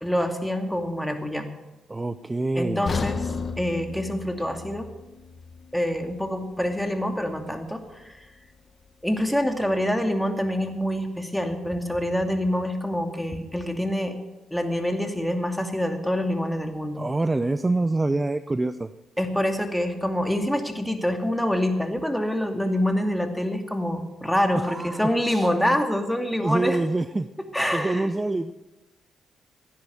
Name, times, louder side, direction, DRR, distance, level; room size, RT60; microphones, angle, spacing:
voice 1, 0.0-1.5 2.5-3.2 3.6-4.9 5.7-8.3 9.0-14.2 14.5-17.0 19.2-26.8 27.4-28.1, equal, 5° left, 5 dB, 2.4 m, -26 dB
voice 2, 1.9-2.9 17.0-18.9 24.6-25.5 26.4-27.3 27.7-28.5, right 2 dB, 20° right, 12 dB, 0.6 m, -26 dB
sound 1, 2.9-6.9 7.3-7.4 8.0-8.1, left 4 dB, 45° left, 1.3 m, -34 dB
15.5 x 10.5 x 6.9 m, 1.1 s
supercardioid pair, 55°, 0 cm